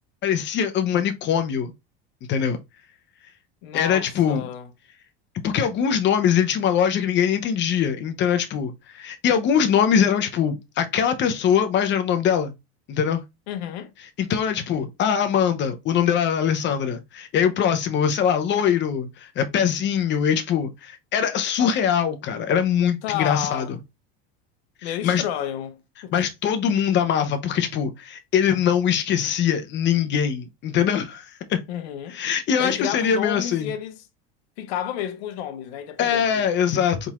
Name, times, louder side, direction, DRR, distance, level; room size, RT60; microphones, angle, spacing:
voice 1, 0.2-1.7 2.3-2.6 3.7-4.4 5.4-12.5 12.9-13.2 14.2-23.8 24.8-25.2 26.1-31.6 32.1-33.7 36.0-37.1, left 8 dB, 35° left, 0.8 m, -22 dB
voice 2, 3.6-4.7 13.5-13.9 21.6-21.8 23.0-23.7 24.8-26.1 31.7-32.2 32.6-34.0 34.6-36.5, left 10 dB, 75° left, 0.9 m, -31 dB
4.3 x 3.9 x 2.4 m
supercardioid pair, 125°, 31 cm